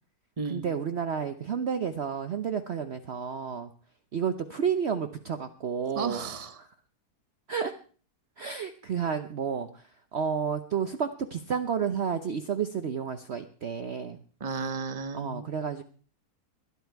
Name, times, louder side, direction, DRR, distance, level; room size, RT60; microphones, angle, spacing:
voice 1, 0.5-3.7 4.1-6.2 6.6-6.7 7.5-7.7 8.4-14.2 15.1-15.8, right 7 dB, 50° right, 8 dB, 0.9 m, -31 dB
voice 2, 5.9-6.6 14.4-15.5, right 4 dB, 25° right, 9 dB, 1.0 m, -33 dB
21.0 x 11.5 x 4.6 m, 0.41 s
omnidirectional pair, 1.7 m